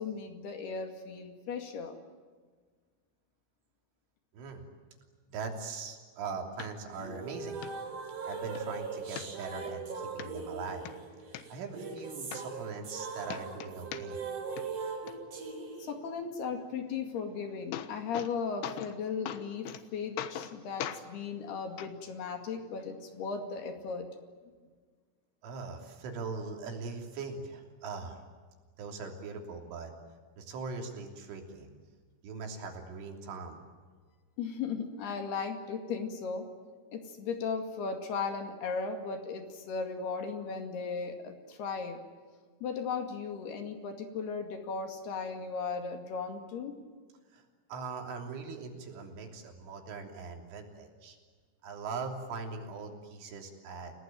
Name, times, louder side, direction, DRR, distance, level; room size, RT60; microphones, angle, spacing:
voice 1, 0.0-2.0 15.8-24.1 34.4-36.5 36.9-42.1 42.6-46.8, left 5 dB, 60° left, 5 dB, 4.0 m, -36 dB
voice 2, 4.3-4.6 5.3-7.6 8.3-10.9 11.5-14.2 25.4-28.2 28.8-29.9 30.4-31.7 32.2-33.6 47.3-47.4 47.7-51.2 51.6-53.9, right 4 dB, 80° right, 3 dB, 5.7 m, -41 dB
sound 1, 6.6-6.7 7.2-7.3 7.6-7.7 8.2-8.6 9.2-9.7 10.2-10.3 10.7-11.4 12.0-12.1 12.3-13.0 13.3-14.3 14.6-15.1 17.2-17.3 17.5-18.3 18.6-19.0 19.3-19.8 20.2-20.5 20.8-21.0 21.8-21.9 22.8-22.9, left 11 dB, 85° left, 3.6 m, -40 dB
sound 2, 6.9-15.9, right 4 dB, 45° right, 5.3 m, -40 dB
29.5 x 19.0 x 9.2 m, 1.5 s
omnidirectional pair, 5.5 m